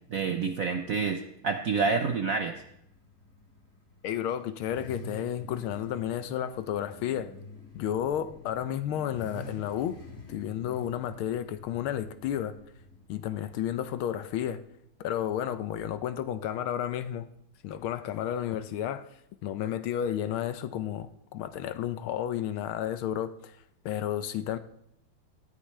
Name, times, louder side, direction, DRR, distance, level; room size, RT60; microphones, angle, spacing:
voice 1, 0.1-2.6, right 5 dB, 65° right, 6 dB, 0.8 m, -28 dB
Car / Idling / Accelerating revving vroom, 2.5-14.6, left 2 dB, 30° left, 2.5 m, -48 dB
voice 2, 4.0-7.3 7.7-10.0 10.3-12.5 13.1-14.6 15.0-17.3 17.6-19.0 19.4-23.6 23.8-24.6, left 10 dB, 75° left, 12 dB, 1.5 m, -32 dB
18.0 x 13.5 x 3.2 m, 0.78 s
omnidirectional pair, 2.4 m